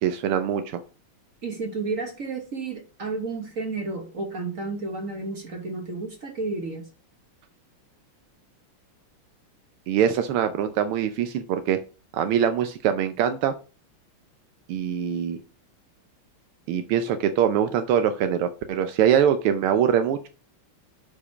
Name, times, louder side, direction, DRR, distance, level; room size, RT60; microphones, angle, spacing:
voice 1, 0.0-0.8 9.9-11.8 12.1-13.5 14.7-15.4 16.7-20.3, right 9 dB, 85° right, 9 dB, 1.6 m, -23 dB
voice 2, 1.4-6.9, right 3 dB, 45° right, 5 dB, 1.4 m, -31 dB
8.4 x 5.0 x 5.8 m, 0.35 s
omnidirectional pair, 2.4 m